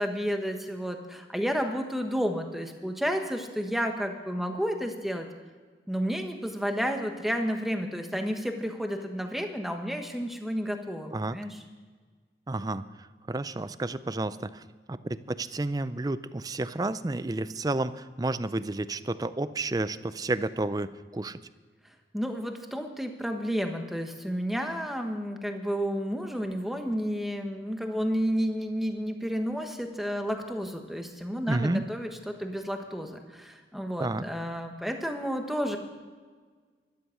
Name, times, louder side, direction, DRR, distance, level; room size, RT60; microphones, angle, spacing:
voice 1, 0.0-5.3 5.9-11.6 22.1-35.8, equal, ahead, 4 dB, 1.2 m, -31 dB
voice 2, 12.5-21.4 31.5-31.8 34.0-34.3, right 2 dB, 20° right, 14 dB, 0.4 m, -31 dB
12.5 x 12.5 x 6.4 m, 1.5 s
head